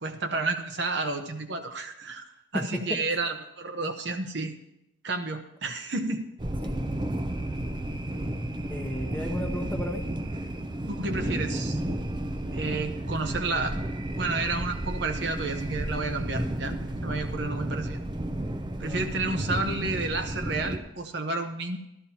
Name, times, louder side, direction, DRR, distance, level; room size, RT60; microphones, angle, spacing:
voice 1, 0.0-4.5 5.0-6.3 10.9-11.8 12.5-13.8 14.1-18.0 18.8-21.8, right 3 dB, 60° right, 6 dB, 0.9 m, -31 dB
sound 1, 6.4-20.8, right 1 dB, 25° right, 0.5 m, -32 dB
voice 2, 8.7-10.0 18.8-19.1, equal, 10° left, 2 dB, 0.9 m, -33 dB
13.5 x 12.5 x 2.9 m, 0.86 s
head